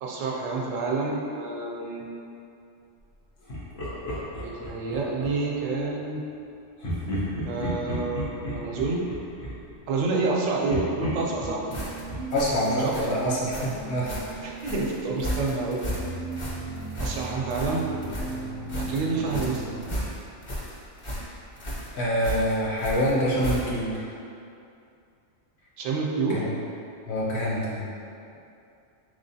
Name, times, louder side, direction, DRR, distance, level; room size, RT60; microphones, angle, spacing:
voice 1, 0.0-2.1 4.4-6.2 7.5-9.0 9.9-11.6 12.8-12.9 14.4-15.9 17.0-17.9 18.8-19.6 25.8-26.4, right 3 dB, 80° right, -2 dB, 0.9 m, -28 dB
Laughter, 3.5-5.6 6.8-10.3 10.7-13.4, equal, 85° left, 1.3 m, -34 dB
sound 1, 11.3-19.8, right 3 dB, 55° right, 0.4 m, -37 dB
sound 2, 11.7-23.9, equal, 35° left, 0.5 m, -35 dB
voice 2, 12.3-14.1 21.9-24.1 26.3-26.5 27.1-27.9, equal, 60° left, -6 dB, 0.9 m, -26 dB
3.6 x 3.4 x 2.7 m, 2.6 s
omnidirectional pair, 1.3 m